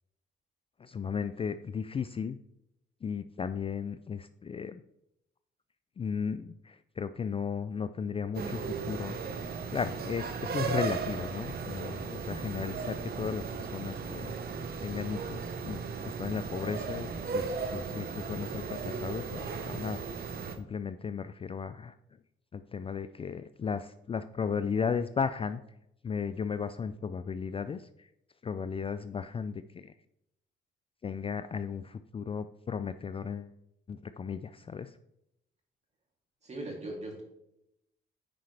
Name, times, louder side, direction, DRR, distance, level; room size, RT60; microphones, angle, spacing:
voice 1, 0.8-2.4 3.0-4.8 6.0-9.2 9.7-14.3 14.8-20.0 20.6-21.9 22.5-25.6 26.0-28.1 28.4-29.9 31.0-33.5 33.9-35.0, left 6 dB, 30° left, 11 dB, 0.3 m, -35 dB
sound 1, 8.3-20.6, right 5 dB, 50° right, 1.0 m, -36 dB
voice 2, 36.4-37.2, right 1 dB, 35° right, -1 dB, 2.8 m, -39 dB
10.0 x 4.7 x 3.3 m, 0.82 s
cardioid pair, 90°, 20 cm